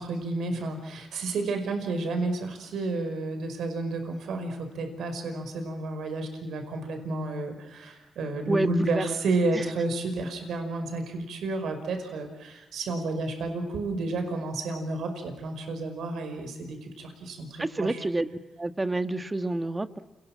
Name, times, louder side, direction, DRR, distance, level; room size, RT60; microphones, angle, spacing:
voice 1, 0.0-18.0, right 2 dB, 80° right, 6 dB, 5.4 m, -31 dB
voice 2, 8.5-9.1 9.5-9.6 17.6-18.3 18.6-20.0, right 2 dB, 20° right, 10 dB, 1.6 m, -28 dB
29.5 x 21.0 x 7.5 m, 1.1 s
cardioid pair, 70°, 0 cm